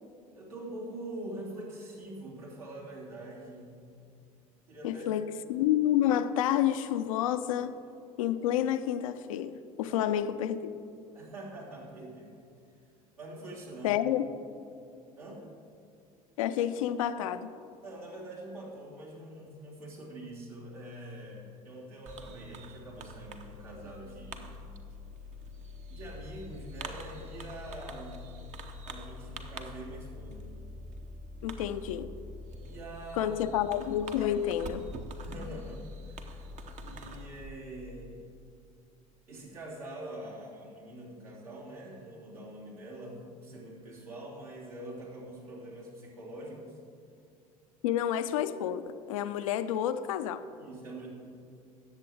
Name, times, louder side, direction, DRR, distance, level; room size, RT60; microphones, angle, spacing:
voice 1, 0.3-4.0 4.7-5.2 9.9-10.0 11.1-12.3 13.2-14.0 15.2-15.4 17.8-24.6 25.9-30.5 32.6-33.3 35.2-36.5 36.8-38.2 39.3-46.8 50.6-51.1, right 1 dB, 75° right, -5 dB, 3.0 m, -44 dB
voice 2, 4.8-7.7 8.2-9.5 9.8-10.7 13.8-14.3 16.4-17.5 31.4-32.1 33.2-34.8 47.8-50.4, left 11 dB, 65° left, 11 dB, 0.5 m, -29 dB
Fireworks, 22.1-37.5, equal, 40° right, 0.9 m, -44 dB
18.0 x 7.5 x 3.5 m, 2.5 s
figure-of-eight pair, 65°, 19 cm